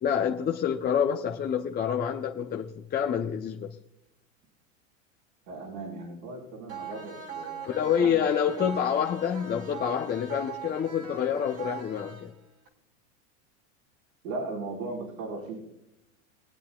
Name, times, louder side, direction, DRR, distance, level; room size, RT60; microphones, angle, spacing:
voice 1, 0.0-3.7 7.7-12.3, left 8 dB, 25° left, 0.7 m, -27 dB
voice 2, 5.5-8.3 14.2-15.6, right 3 dB, 80° right, 4.8 m, -37 dB
sound 1, 6.7-12.7, right 6 dB, 35° right, 2.0 m, -41 dB
24.5 x 8.4 x 2.4 m
hypercardioid pair, 105°, 40 cm